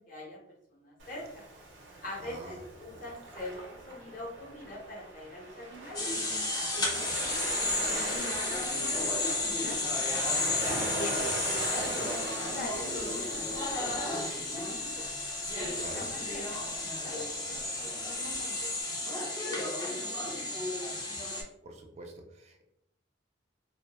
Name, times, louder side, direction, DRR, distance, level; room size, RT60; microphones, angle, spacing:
voice 1, 0.1-0.4 0.7-1.5 2.0-6.1 6.6-9.9 10.7-13.9 14.4-15.1 15.5-17.4 17.8-20.4 20.8-21.0, left 1 dB, 45° left, -3 dB, 0.8 m, -43 dB
Waves surf, 1.0-18.8, right 2 dB, 75° right, 0.6 m, -42 dB
voice 2, 2.2-2.6 6.8-7.1 10.7-10.9 15.8-16.0 21.6-22.6, right 1 dB, 35° right, 3 dB, 0.3 m, -45 dB
sound 1, 5.9-21.4, left 2 dB, 20° left, 0.5 m, -32 dB
2.2 x 2.1 x 2.9 m, 0.78 s
head